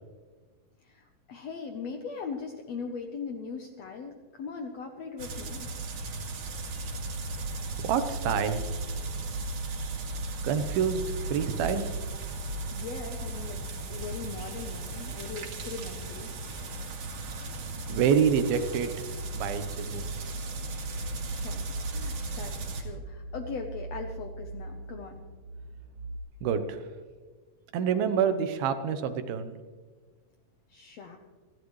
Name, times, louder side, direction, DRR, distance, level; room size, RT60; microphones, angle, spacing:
voice 1, 0.8-5.7 12.7-13.6 13.9-16.3 21.2-25.2 30.7-31.2, left 5 dB, 70° left, 4 dB, 1.6 m, -40 dB
sound 1, 5.2-22.8, right 2 dB, 60° right, 3.5 m, -36 dB
voice 2, 7.8-8.6 10.4-11.9 17.9-18.9 19.3-20.3 26.4-26.8 27.7-29.5, right 7 dB, 85° right, 9 dB, 2.9 m, -27 dB
sound 2, 20.8-26.2, right 2 dB, 40° right, 1.3 m, -40 dB
29.5 x 12.0 x 3.2 m, 1.5 s
omnidirectional pair, 4.2 m